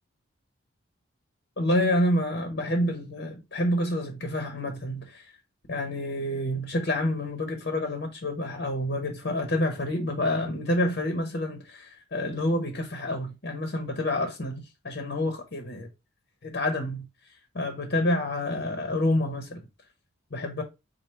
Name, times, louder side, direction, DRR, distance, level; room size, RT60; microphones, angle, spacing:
voice 1, 1.6-5.3 5.7-15.9 16.4-17.0 17.5-19.6 20.3-20.6, left 1 dB, 50° left, 0.9 m, -28 dB
4.6 x 2.7 x 4.1 m
head